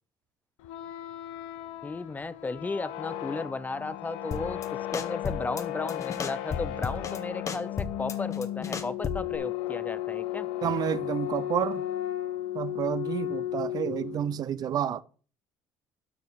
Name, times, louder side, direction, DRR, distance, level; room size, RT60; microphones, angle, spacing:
sound 1, 0.6-14.4, left 13 dB, 80° left, 0.8 m, -35 dB
voice 1, 1.8-10.5, left 3 dB, 20° left, 0.5 m, -35 dB
sound 2, 4.3-4.7 4.9-5.6 5.9-7.2 7.5-9.4, left 6 dB, 35° left, 1.1 m, -33 dB
voice 2, 10.6-11.9 12.5-15.0, right 9 dB, 50° right, 0.6 m, -30 dB
12.0 x 5.1 x 4.1 m
supercardioid pair, 85°, 9 cm